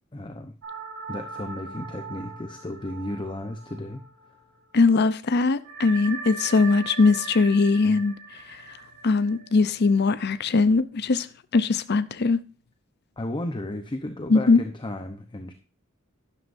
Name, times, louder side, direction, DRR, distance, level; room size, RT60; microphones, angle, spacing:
voice 1, 0.1-0.5 1.1-4.0 7.8-8.0 13.2-15.5, left 1 dB, 25° left, 0.8 m, -34 dB
sound 1, 0.6-4.6 4.9-5.0 5.6-10.3, right 4 dB, 70° right, 3.9 m, -40 dB
voice 2, 4.7-8.1 8.5-8.6 9.0-11.3 11.5-12.4 14.3-14.6, left 4 dB, 55° left, 0.6 m, -20 dB
11.5 x 11.5 x 2.6 m
head